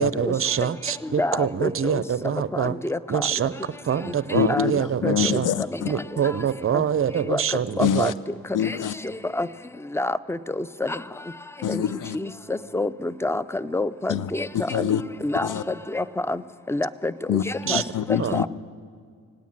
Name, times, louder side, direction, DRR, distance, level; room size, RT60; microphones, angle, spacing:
voice 1, 0.0-2.8 3.1-3.5 3.8-5.5 5.8-8.1 17.7-17.8 18.2-18.4, right 8 dB, 40° right, 0.6 m, -25 dB
voice 2, 1.2-2.0 2.5-3.2 4.1-4.2 4.5-5.4 6.7-6.8 7.3-7.4 7.8-8.1 8.6-8.8 9.3-9.5 9.9-11.0 11.7-11.8 12.1-14.5 14.7-14.9 15.2-16.4 16.7-17.8 18.3-18.5, left 2 dB, 5° left, 0.5 m, -28 dB
voice 3, 4.3-4.7 5.0-5.9 7.8-8.0 8.5-8.9 11.6-12.2 14.1-14.3 14.5-15.0 15.4-15.6 17.3-18.5, left 9 dB, 60° left, 0.7 m, -25 dB
17.5 x 9.3 x 8.9 m
supercardioid pair, 45°, 35 cm